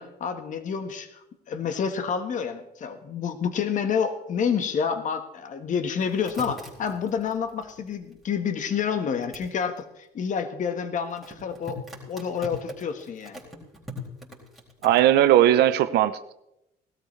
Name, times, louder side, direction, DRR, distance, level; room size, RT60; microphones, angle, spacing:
voice 1, 0.0-13.4, left 6 dB, 50° left, 8 dB, 1.3 m, -29 dB
sound 1, 6.0-8.3 9.2-9.5 11.1-15.0, left 1 dB, ahead, 4.3 m, -41 dB
voice 2, 14.8-16.3, right 12 dB, 75° right, 11 dB, 0.7 m, -18 dB
18.5 x 13.0 x 3.2 m, 0.84 s
cardioid pair, 110°, 17 cm